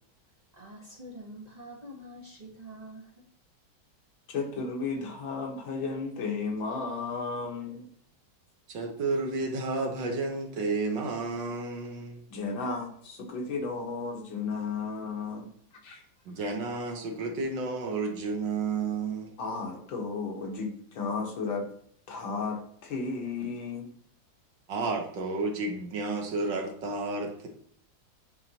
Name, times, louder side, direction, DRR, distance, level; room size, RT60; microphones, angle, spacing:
voice 1, 0.5-3.2, right 1 dB, 25° right, -2 dB, 1.0 m, -46 dB
voice 2, 4.3-7.9 12.3-15.5 15.8-16.0 19.4-21.7 22.1-23.9, left 4 dB, 75° left, 1 dB, 2.0 m, -34 dB
voice 3, 8.7-12.2 16.3-19.3 24.7-27.5, right 3 dB, 70° right, 3 dB, 1.7 m, -31 dB
9.2 x 3.8 x 2.8 m, 0.64 s
omnidirectional pair, 2.1 m